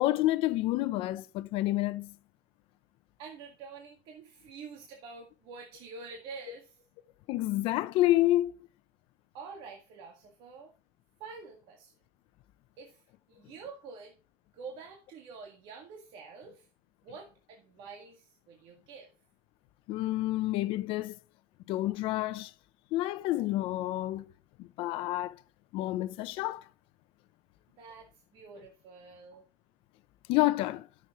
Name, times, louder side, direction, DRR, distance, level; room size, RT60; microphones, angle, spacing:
voice 1, 0.0-2.1 7.3-8.5 19.9-21.1 21.7-22.5 22.9-24.3 24.6-25.4 25.7-26.6 30.3-30.9, left 16 dB, 65° left, 0.7 m, -29 dB
voice 2, 3.2-6.8 9.3-10.7 11.2-11.9 12.8-13.0 13.3-14.1 14.5-16.7 17.0-19.1 27.8-29.4, right 5 dB, 60° right, 1.9 m, -47 dB
13.5 x 7.1 x 3.1 m
cardioid pair, 145°, 10 cm